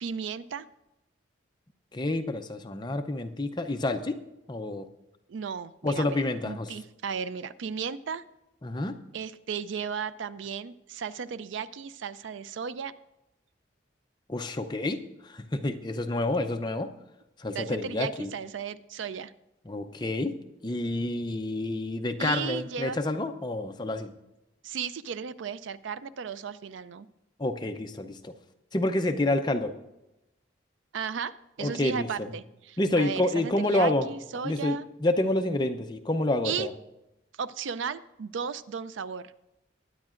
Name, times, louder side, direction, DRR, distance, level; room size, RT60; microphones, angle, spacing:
voice 1, 0.0-0.7 5.3-8.2 9.1-12.9 17.5-19.3 22.2-23.0 24.6-27.1 30.9-34.8 36.4-36.7 37.4-39.3, right 6 dB, 80° right, 15 dB, 0.4 m, -35 dB
voice 2, 1.9-4.2 4.5-4.9 5.8-6.7 8.6-9.0 14.3-16.9 17.4-18.3 19.7-20.3 20.6-24.1 27.4-28.3 28.7-29.7 31.6-32.3 32.8-34.1 34.4-36.7, left 2 dB, 25° left, 6 dB, 0.6 m, -28 dB
21.0 x 9.6 x 2.5 m, 0.94 s
head